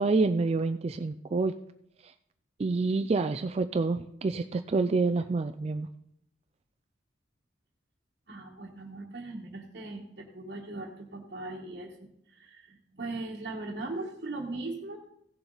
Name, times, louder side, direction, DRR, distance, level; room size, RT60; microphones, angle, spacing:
voice 1, 0.0-1.5 2.6-5.9, right 3 dB, 30° right, 9 dB, 0.3 m, -27 dB
voice 2, 8.3-11.9 12.3-15.0, right 2 dB, 55° right, -3 dB, 1.3 m, -39 dB
16.5 x 7.0 x 3.9 m, 0.74 s
head